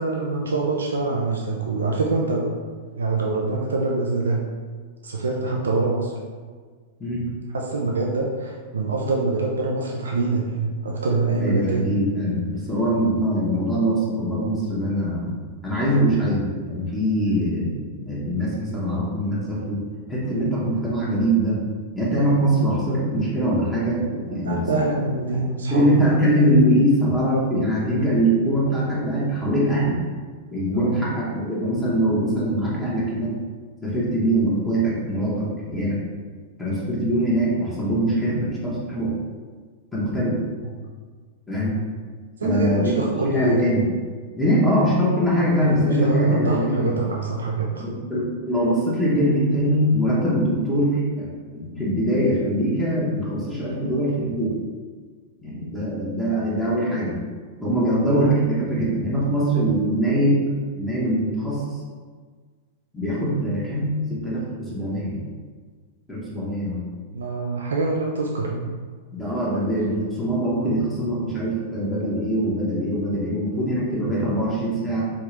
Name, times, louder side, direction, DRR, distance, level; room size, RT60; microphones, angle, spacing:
voice 1, 0.0-2.5 3.0-4.4 5.0-6.2 7.5-11.9 24.3-26.3 30.7-31.0 40.6-40.8 42.4-43.7 45.6-47.9 57.9-58.1 67.1-68.6, right 3 dB, 90° right, -1 dB, 0.4 m, -25 dB
voice 2, 11.4-15.3 15.6-19.8 20.1-21.6 21.9-24.9 25.7-29.9 30.5-33.3 33.8-36.0 36.6-39.1 39.9-40.3 41.5-41.8 42.4-42.9 43.2-43.8 44.4-47.0 47.8-54.5 55.4-57.1 57.6-60.4 60.8-61.8 62.9-65.2 66.1-66.8 69.1-75.0, equal, 10° left, -8 dB, 1.0 m, -22 dB
3.5 x 2.3 x 3.1 m, 1.5 s
hypercardioid pair, 110°, 0 cm